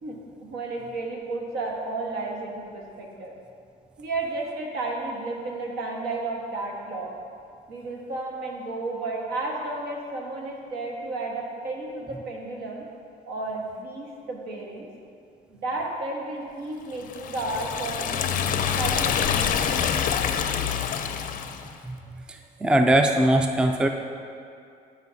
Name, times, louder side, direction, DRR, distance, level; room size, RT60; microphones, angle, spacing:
voice 1, 0.0-3.3 4.0-7.1 7.7-12.8 13.3-14.9 15.5-20.0, right 2 dB, 75° right, -1 dB, 1.4 m, -33 dB
Liquid, 17.1-21.7, left 8 dB, 55° left, 0.5 m, -26 dB
voice 2, 22.6-23.9, right 1 dB, 5° right, 5 dB, 0.3 m, -20 dB
13.0 x 5.0 x 2.7 m, 2.4 s
cardioid pair, 110°, 17 cm